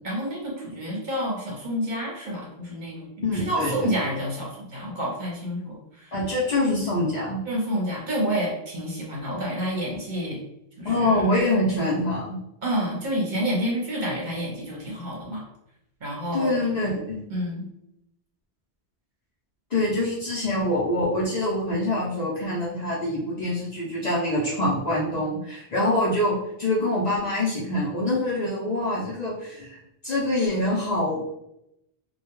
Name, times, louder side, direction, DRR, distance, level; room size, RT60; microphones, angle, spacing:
voice 1, 0.0-6.1 7.4-10.4 10.8-11.2 12.6-15.4 16.0-16.6 17.3-17.7, equal, 50° right, -3 dB, 0.8 m, -29 dB
voice 2, 3.2-3.9 6.1-7.4 10.8-12.4 16.3-17.2 19.7-29.8 30.0-31.2, left 1 dB, 50° left, -6 dB, 0.5 m, -25 dB
2.2 x 2.1 x 2.9 m, 0.82 s
omnidirectional pair, 1.1 m